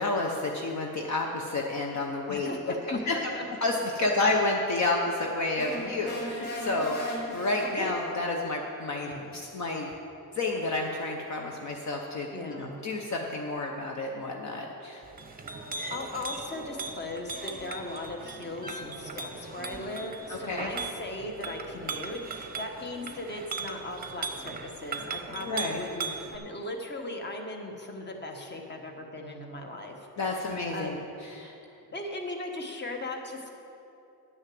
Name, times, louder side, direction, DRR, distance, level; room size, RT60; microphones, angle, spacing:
voice 1, 0.0-2.5 2.9-9.9 10.3-15.0 20.3-20.7 25.4-25.8 30.2-31.5, left 2 dB, 50° left, 1 dB, 0.9 m, -30 dB
voice 2, 2.3-3.4 7.7-7.9 9.1-9.3 12.3-12.8 15.9-31.0 31.9-33.5, left 2 dB, 30° left, 2 dB, 1.2 m, -38 dB
sound 1, 5.6-8.2, left 1 dB, 80° left, 2.5 m, -37 dB
Chink clink, 15.0-26.4, right 4 dB, 25° right, 0.8 m, -38 dB
10.5 x 6.3 x 7.7 m, 2.8 s
wide cardioid pair, 135°, 37 cm